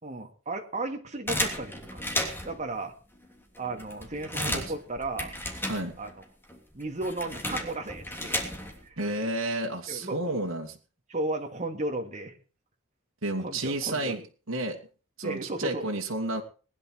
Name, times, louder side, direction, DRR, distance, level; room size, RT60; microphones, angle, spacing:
voice 1, 0.0-2.2 2.4-2.9 3.6-5.3 6.0-6.2 6.7-8.4 8.8-9.0 9.9-10.4 11.1-12.4 13.4-14.2 15.2-15.9, right 2 dB, 35° right, 4 dB, 2.4 m, -34 dB
sound 1, 1.3-2.6 3.2-3.3 3.6-6.2 6.5-8.9, left 1 dB, 10° left, 3.0 m, -33 dB
voice 2, 4.3-4.6 5.7-6.0 9.0-10.8 13.2-14.2 14.5-14.8 15.2-16.4, right 2 dB, 75° right, 1 dB, 2.4 m, -31 dB
20.5 x 10.5 x 4.7 m, 0.37 s
head